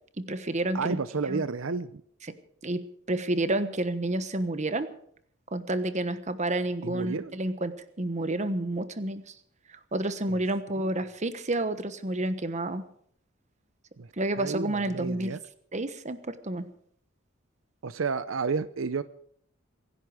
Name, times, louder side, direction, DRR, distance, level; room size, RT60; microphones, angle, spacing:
voice 1, 0.2-1.0 1.3-1.4 2.6-2.8 3.1-4.9 5.5-9.3 9.9-12.8 14.2-15.4 15.7-16.7, right 1 dB, 35° right, 11 dB, 1.2 m, -30 dB
voice 2, 0.7-2.0 6.8-7.4 10.3-10.4 10.7-10.8 14.0-14.1 14.4-15.4 17.8-19.0, right 4 dB, 80° right, 14 dB, 0.6 m, -31 dB
25.0 x 11.0 x 4.9 m, 0.63 s
head